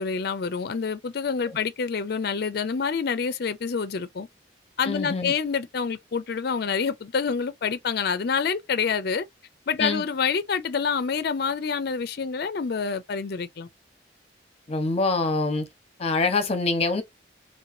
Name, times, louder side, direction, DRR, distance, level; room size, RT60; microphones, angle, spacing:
voice 1, 0.0-4.3 4.8-9.2 9.7-13.7, left 5 dB, 55° left, 0.5 m, -27 dB
voice 2, 4.8-5.3 9.8-10.0 14.7-15.7 16.0-17.0, left 3 dB, 35° left, 0.9 m, -25 dB
3.2 x 2.9 x 2.6 m
head